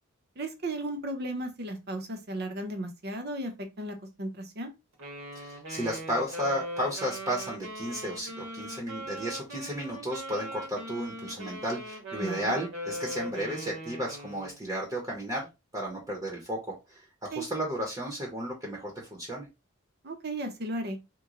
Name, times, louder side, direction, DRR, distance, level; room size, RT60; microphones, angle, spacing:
voice 1, 0.4-3.5 3.8-4.7 12.2-12.5 17.3-17.4 20.0-21.0, right 1 dB, 45° right, 6 dB, 0.7 m, -35 dB
Wind instrument woodwind instrument, 5.0-14.6, right 1 dB, 65° right, 1.1 m, -40 dB
voice 2, 5.3-15.5 15.7-19.5, equal, 15° right, -2 dB, 0.8 m, -33 dB
3.0 x 2.1 x 3.7 m, 0.25 s
head